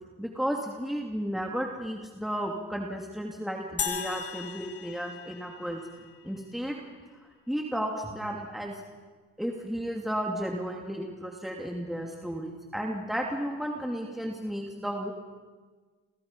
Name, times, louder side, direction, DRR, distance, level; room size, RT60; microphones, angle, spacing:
voice 1, 0.2-5.8 6.2-6.8 7.2-8.8 9.4-15.1, equal, ahead, 0 dB, 2.8 m, -33 dB
sound 1, 3.8-6.2, left 7 dB, 50° left, 2.1 m, -36 dB
29.0 x 24.0 x 5.7 m, 1.4 s
cardioid pair, 90°, 30 cm